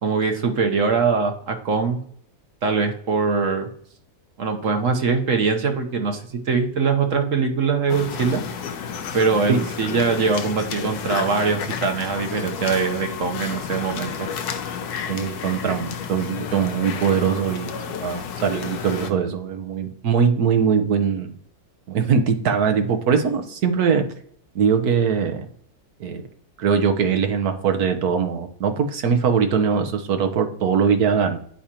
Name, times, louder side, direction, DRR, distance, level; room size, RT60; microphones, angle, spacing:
voice 1, 0.0-2.0 2.6-3.7 4.4-6.2 6.5-8.4 9.1-14.3, right 5 dB, 60° right, 5 dB, 1.3 m, -22 dB
sound 1, 7.9-19.1, left 7 dB, 80° left, 1.2 m, -31 dB
voice 2, 15.1-21.3 21.9-24.0 24.5-25.5 26.0-26.2 26.6-31.4, right 6 dB, 75° right, 6 dB, 1.4 m, -21 dB
10.0 x 5.0 x 2.9 m, 0.62 s
omnidirectional pair, 1.7 m